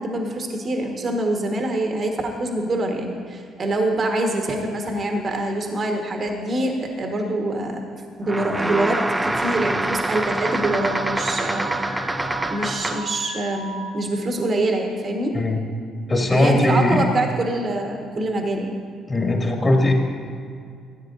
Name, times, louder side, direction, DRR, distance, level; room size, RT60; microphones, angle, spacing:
voice 1, 0.0-12.1 12.5-15.3 16.3-18.7, right 1 dB, 40° right, 2 dB, 1.5 m, -25 dB
sound 1, 8.2-13.2, right 1 dB, 15° right, 0.4 m, -25 dB
Alarm, 10.4-13.9, right 3 dB, 75° right, 0.9 m, -35 dB
voice 2, 16.1-17.0 19.1-19.9, left 1 dB, 25° left, 0 dB, 2.3 m, -19 dB
17.5 x 9.4 x 2.7 m, 2.3 s
figure-of-eight pair, 45°, 0 cm